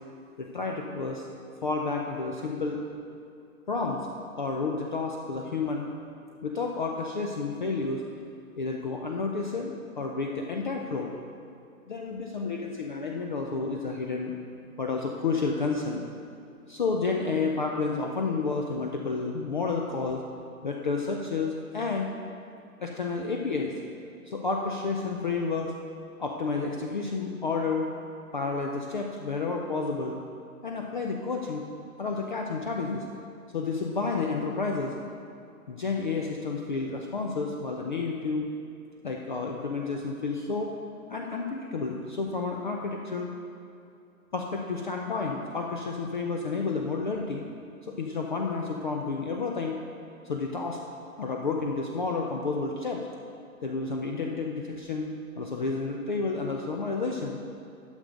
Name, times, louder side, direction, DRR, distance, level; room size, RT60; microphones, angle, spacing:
voice 1, 0.4-1.3 1.6-2.8 3.7-4.1 4.4-5.9 6.4-8.0 8.6-11.1 11.9-14.3 14.8-16.0 16.7-20.2 20.6-22.1 22.8-23.7 24.3-25.7 26.2-27.9 28.3-30.2 30.6-31.6 32.0-33.0 33.5-34.9 35.7-38.5 39.0-40.7 41.1-43.3 44.3-47.4 47.8-49.8 50.2-50.8 51.2-53.1 53.6-57.4, left 4 dB, 35° left, 1 dB, 0.6 m, -30 dB
11.5 x 6.8 x 5.1 m, 2.5 s
figure-of-eight pair, 135°, 45 cm